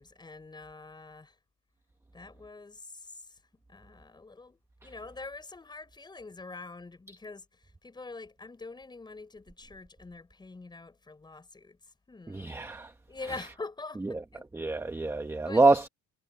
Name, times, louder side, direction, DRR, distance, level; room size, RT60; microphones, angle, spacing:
voice 1, 0.0-1.4 2.1-12.5 13.1-14.7 15.5-15.6, left 3 dB, 15° left, 6.0 m, -45 dB
voice 2, 12.3-12.9 14.0-14.2 14.5-15.9, right 3 dB, 10° right, 1.0 m, -26 dB
cardioid pair, 160°, 31 cm